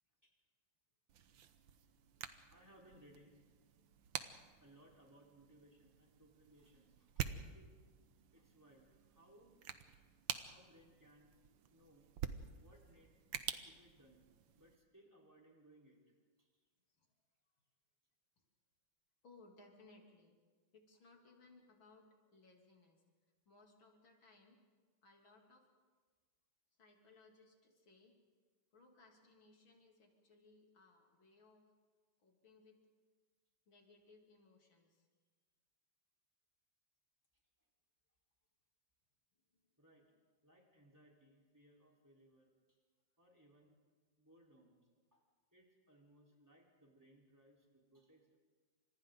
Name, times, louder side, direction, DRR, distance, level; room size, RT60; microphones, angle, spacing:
sound 1, 1.1-14.8, right 8 dB, 85° right, 1.7 m, -49 dB
voice 1, 2.5-3.3 4.6-7.7 8.3-9.5 9.9-10.0 10.5-11.3 11.7-12.1 12.6-13.1 13.6-14.2 14.5-16.6 39.8-40.1 40.4-42.8 43.2-43.8 44.2-48.4, right 1 dB, 10° right, -2 dB, 4.2 m, -66 dB
voice 2, 19.2-20.4 20.7-23.0 23.5-24.6 25.0-25.7 26.8-28.2 28.7-31.7 32.2-32.8 33.7-35.1 39.5-39.7, left 3 dB, 85° left, 0 dB, 3.9 m, -65 dB
30.0 x 26.5 x 4.0 m, 1.5 s
omnidirectional pair, 2.1 m